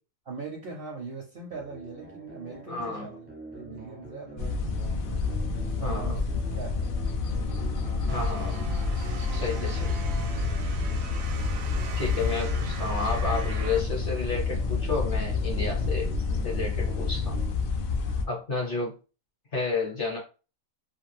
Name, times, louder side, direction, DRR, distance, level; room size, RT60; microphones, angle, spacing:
voice 1, 0.3-4.7 5.6-6.9, right 4 dB, 60° right, 0.6 m, -41 dB
sound 1, 1.5-17.5, right 1 dB, 15° right, 0.4 m, -45 dB
voice 2, 2.7-3.1 5.8-6.2 8.1-8.7 9.3-10.1 12.0-16.1 16.4-17.4 18.2-18.9 19.5-20.2, left 3 dB, 50° left, 0.8 m, -31 dB
sound 2, 4.4-18.3, left 4 dB, 70° left, 0.5 m, -29 dB
sound 3, 8.1-13.8, right 5 dB, 80° right, 1.0 m, -42 dB
2.5 x 2.4 x 3.2 m
omnidirectional pair, 1.4 m